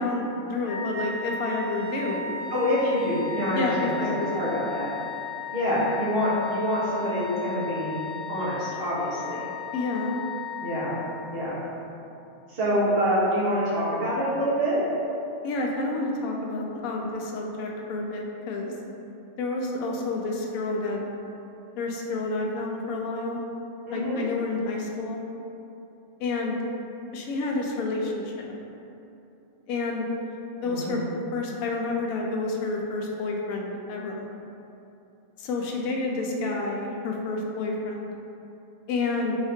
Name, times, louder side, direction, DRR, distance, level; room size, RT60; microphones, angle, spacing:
voice 1, 0.0-2.3 3.5-4.6 9.7-10.1 15.4-18.7 19.4-21.0 21.8-23.4 23.9-25.2 26.2-26.6 27.1-28.5 29.7-30.1 30.6-31.0 31.3-34.2 35.4-38.1 38.9-39.4, left 3 dB, 80° left, 0 dB, 1.0 m, -29 dB
Wind instrument woodwind instrument, 0.6-11.4, left 4 dB, 60° left, 0.3 m, -36 dB
voice 2, 2.5-4.9 5.5-8.0 8.3-9.4 10.6-11.0 11.3-11.6 12.5-14.8 23.9-24.2 30.6-31.0, equal, 45° right, -8 dB, 1.1 m, -26 dB
4.0 x 2.7 x 3.5 m, 2.8 s
omnidirectional pair, 1.5 m